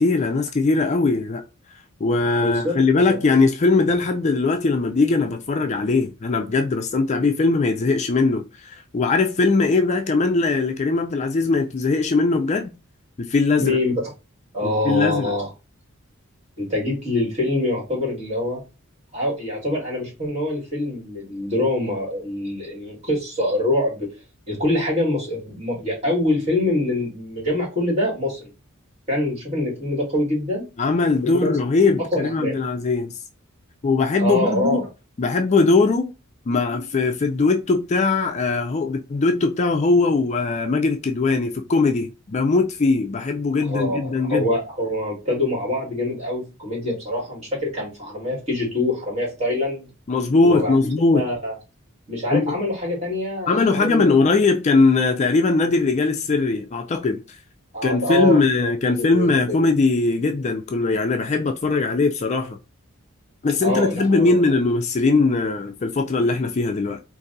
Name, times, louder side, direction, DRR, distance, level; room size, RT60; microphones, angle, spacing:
voice 1, 0.0-1.4 2.0-12.7 13.2-13.8 14.6-15.3 30.8-33.2 33.8-34.8 35.2-36.1 36.5-44.5 50.1-51.2 52.3-52.6 53.5-57.4 57.8-62.6 63.4-67.0, left 3 dB, 30° left, 0.4 m, -20 dB
voice 2, 2.4-3.2 13.6-13.9 14.5-15.5 16.6-18.6 19.1-24.1 24.5-28.5 29.1-30.7 31.2-31.6 32.1-32.6 34.2-34.8 43.7-49.9 50.4-50.8 51.1-51.5 52.1-54.1 57.7-58.7 59.0-59.6 63.6-64.5, left 1 dB, 30° right, 2.3 m, -25 dB
3.9 x 2.6 x 3.9 m
head